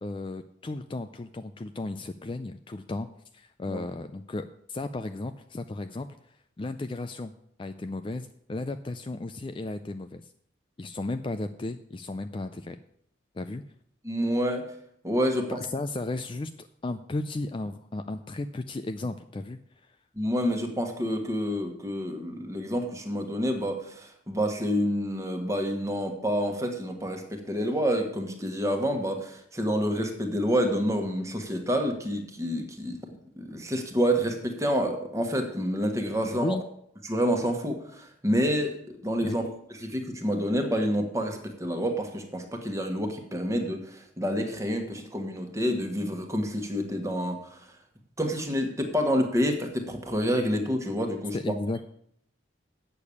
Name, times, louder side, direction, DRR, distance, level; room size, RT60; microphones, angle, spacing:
voice 1, 0.0-3.1 3.3-7.3 7.6-10.3 10.8-12.8 13.3-13.6 15.5-20.0 36.2-36.6 39.2-39.4 51.3-51.8, left 2 dB, 25° left, 9 dB, 0.4 m, -34 dB
voice 2, 14.0-14.7 15.0-15.6 20.2-33.0 33.4-36.6 37.1-39.4 39.7-47.6 48.2-51.3, equal, 15° right, 4 dB, 1.4 m, -28 dB
8.4 x 6.8 x 8.5 m, 0.70 s
head